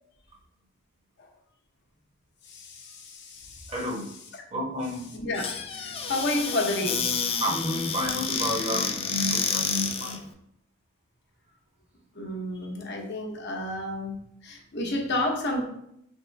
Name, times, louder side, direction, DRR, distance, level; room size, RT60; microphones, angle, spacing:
voice 1, 2.5-3.7 5.1-5.5 5.7-7.1 12.2-14.2 14.4-15.7, left 1 dB, 60° left, 1 dB, 0.9 m, -30 dB
voice 2, 3.7-4.1 4.5-5.1 7.4-10.2, equal, 30° right, -2 dB, 1.0 m, -30 dB
Squeak / Cupboard open or close, 5.3-10.2, left 6 dB, 30° left, 0.3 m, -29 dB
3.6 x 3.5 x 3.2 m, 0.74 s
head